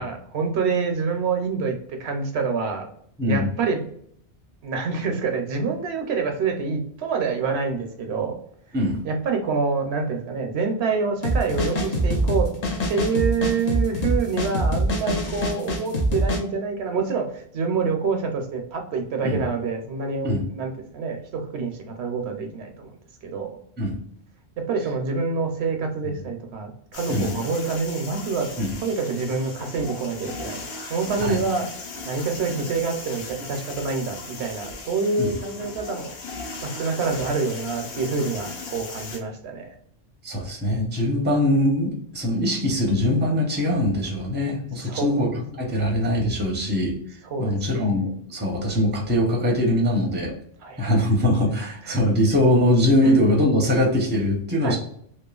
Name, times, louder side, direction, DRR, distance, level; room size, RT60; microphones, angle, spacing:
voice 1, 0.0-2.9 3.2-3.8 4.6-8.4 9.0-12.5 12.9-22.9 23.2-23.6 24.6-28.5 28.8-30.6 30.9-31.7 32.0-36.1 36.4-39.7 44.8-45.3 47.3-48.0 50.6-50.9 51.8-52.0 53.0-53.2 54.6-54.8, right 4 dB, 75° right, 4 dB, 0.9 m, -27 dB
voice 2, 3.2-3.5 8.7-9.0 19.2-19.4 20.2-20.4 23.8-24.0 26.1-26.2 27.1-27.3 28.6-28.7 31.2-31.4 35.2-35.4 40.2-45.3 45.6-46.9 47.4-50.3 50.8-54.8, left 1 dB, 10° right, -1 dB, 0.6 m, -22 dB
sound 1, 11.2-16.4, right 1 dB, 45° left, 0.6 m, -24 dB
sound 2, 26.9-39.2, left 3 dB, 70° left, 0.9 m, -37 dB
2.9 x 2.2 x 2.3 m, 0.65 s
omnidirectional pair, 1.1 m